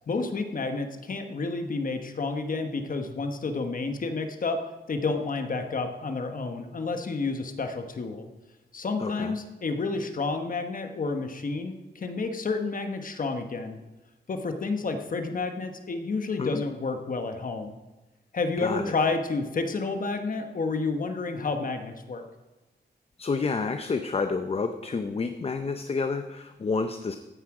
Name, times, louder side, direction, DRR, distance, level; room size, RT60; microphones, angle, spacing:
voice 1, 0.1-4.6 4.9-8.3 8.7-13.8 14.3-17.7 18.3-22.2, left 3 dB, 50° left, 6 dB, 1.2 m, -30 dB
voice 2, 9.0-9.3 16.4-16.6 18.6-18.9 23.2-27.2, left 4 dB, 35° left, 8 dB, 0.6 m, -29 dB
15.0 x 9.9 x 4.8 m, 1.1 s
wide cardioid pair, 165°, 18 cm